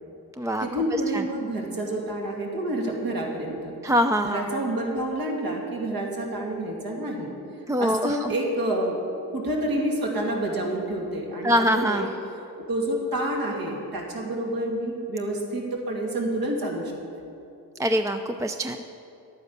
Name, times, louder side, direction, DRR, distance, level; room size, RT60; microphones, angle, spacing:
voice 1, 0.6-3.7 4.2-7.3 7.8-9.0 9.3-12.1 12.7-16.9, right 1 dB, 65° right, -1 dB, 2.6 m, -28 dB
voice 2, 3.8-4.4 7.7-8.3 11.4-12.1 17.8-18.8, equal, 10° right, 7 dB, 0.4 m, -23 dB
11.5 x 9.1 x 6.7 m, 2.7 s
cardioid pair, 90°, 38 cm